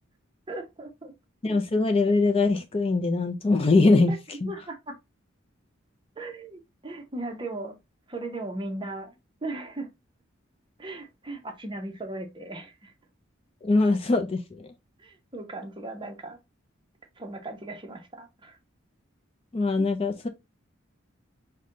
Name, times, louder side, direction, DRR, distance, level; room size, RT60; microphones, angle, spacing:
voice 1, 0.5-1.1 4.1-4.2 4.4-4.9 6.2-7.8 8.1-9.9 10.8-12.9 15.0-16.4 17.2-18.6, right 2 dB, 25° right, 0.7 m, -37 dB
voice 2, 1.4-4.1 4.4-4.5 13.6-14.7 19.5-20.3, left 3 dB, 30° left, 0.4 m, -22 dB
5.1 x 2.2 x 3.7 m
head